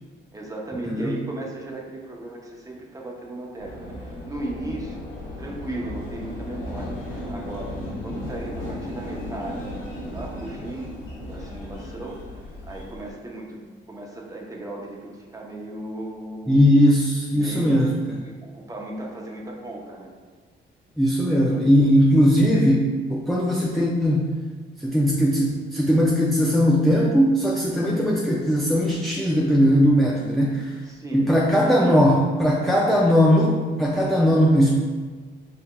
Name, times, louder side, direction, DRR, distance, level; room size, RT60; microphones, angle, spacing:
voice 1, 0.3-5.0 5.4-9.6 10.1-10.9 11.2-16.6 17.3-17.9 18.2-20.1 27.6-28.0 30.8-31.3 31.7-32.0, right 2 dB, 15° right, -2 dB, 0.8 m, -36 dB
voice 2, 0.9-1.2 16.5-18.2 21.0-24.3 24.8-30.8 31.1-34.8, equal, ahead, -3 dB, 0.4 m, -19 dB
sound 1, 3.6-13.1, left 1 dB, 80° left, 1.1 m, -35 dB
5.6 x 2.8 x 2.2 m, 1.5 s
cardioid pair, 90°, 20 cm